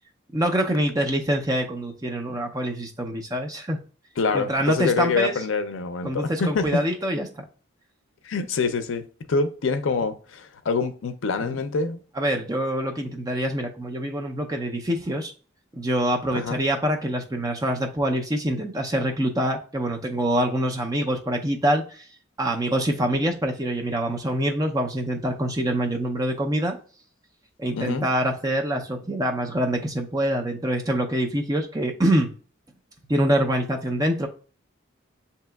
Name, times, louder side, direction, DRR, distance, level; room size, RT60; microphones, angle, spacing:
voice 1, 0.3-3.8 4.3-5.3 6.0-7.4 11.4-11.5 12.2-15.3 15.7-22.1 22.4-26.8 27.6-32.3 33.1-34.3, right 1 dB, 20° right, 0.5 m, -25 dB
voice 2, 4.2-6.7 8.2-12.0 16.3-16.6 27.8-28.1, left 4 dB, 75° left, 0.5 m, -26 dB
7.7 x 2.8 x 2.3 m
head